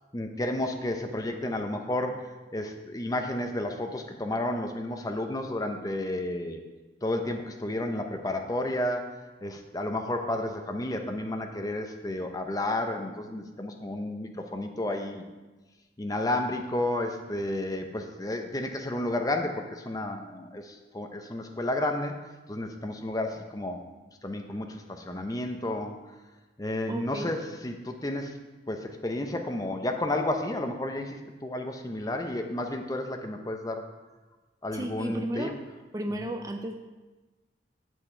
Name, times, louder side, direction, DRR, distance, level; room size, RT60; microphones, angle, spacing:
voice 1, 0.1-6.6 7.0-15.2 16.0-22.2 22.5-23.8 24.2-25.9 26.6-28.4 28.7-33.8 34.6-35.5 36.2-36.3, left 1 dB, 20° left, 4 dB, 0.7 m, -32 dB
voice 2, 26.9-27.3 34.7-35.6 35.9-36.7, right 1 dB, 20° right, 5 dB, 0.4 m, -34 dB
8.3 x 6.3 x 4.5 m, 1.2 s
head